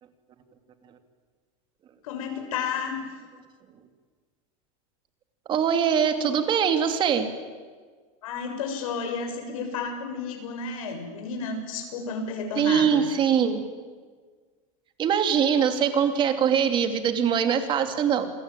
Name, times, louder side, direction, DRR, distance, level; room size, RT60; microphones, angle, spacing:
voice 1, 2.0-3.0 8.2-13.1, left 5 dB, 85° left, 5 dB, 7.2 m, -32 dB
voice 2, 5.5-7.3 12.6-13.6 15.0-18.3, right 7 dB, 30° right, 7 dB, 2.6 m, -22 dB
28.5 x 21.5 x 9.1 m, 1.5 s
supercardioid pair, 155°, 17 cm